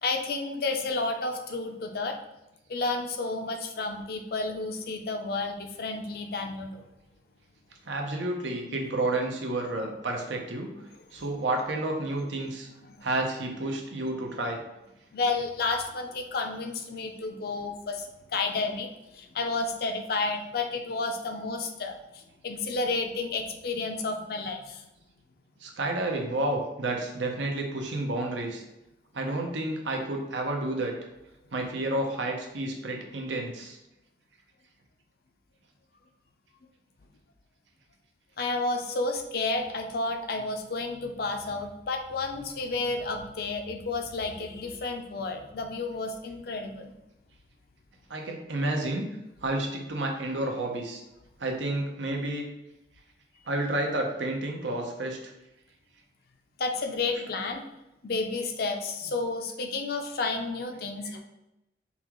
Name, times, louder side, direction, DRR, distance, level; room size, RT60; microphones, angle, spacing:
voice 1, 0.0-2.2 2.7-6.9 9.8-9.9 11.1-11.3 12.8-13.1 15.1-24.9 38.4-46.9 56.6-57.7 58.0-61.2, left 3 dB, 55° left, 4 dB, 0.5 m, -31 dB
voice 2, 7.8-10.7 11.1-12.7 13.0-14.6 25.6-28.6 29.1-30.9 31.5-33.8 48.1-49.1 49.4-51.0 51.4-52.5 53.5-55.2 61.0-61.2, right 2 dB, 85° right, 2 dB, 0.8 m, -30 dB
5.4 x 2.4 x 3.0 m, 0.91 s
head